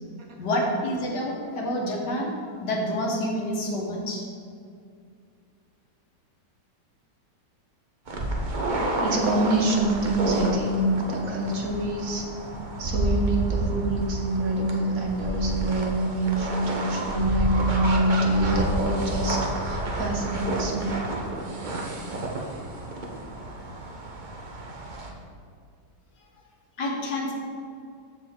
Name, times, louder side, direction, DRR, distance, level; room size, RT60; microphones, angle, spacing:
voice 1, 0.4-2.3 2.6-4.3 26.8-27.3, left 1 dB, 75° left, -1 dB, 1.9 m, -28 dB
sound 1, 8.1-25.1, right 1 dB, 35° right, 0.8 m, -30 dB
voice 2, 9.0-12.3 12.8-21.1, right 1 dB, 55° right, 0 dB, 1.4 m, -26 dB
13.5 x 4.7 x 3.7 m, 2.3 s
omnidirectional pair, 1.8 m